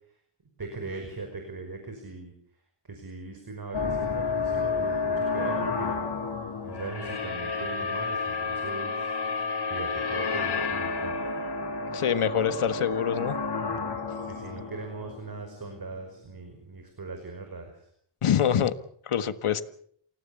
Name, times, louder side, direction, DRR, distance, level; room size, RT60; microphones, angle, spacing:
voice 1, 0.6-2.3 2.8-6.0 6.6-9.1 9.7-11.3 14.2-17.9, right 3 dB, 45° right, 6 dB, 5.4 m, -39 dB
sound 1, 3.7-15.8, left 4 dB, 50° left, 4.2 m, -30 dB
voice 2, 11.9-13.4 18.2-18.7 19.1-19.6, left 9 dB, 80° left, 11 dB, 1.7 m, -25 dB
28.5 x 17.5 x 7.2 m, 0.62 s
wide cardioid pair, 105°, 50 cm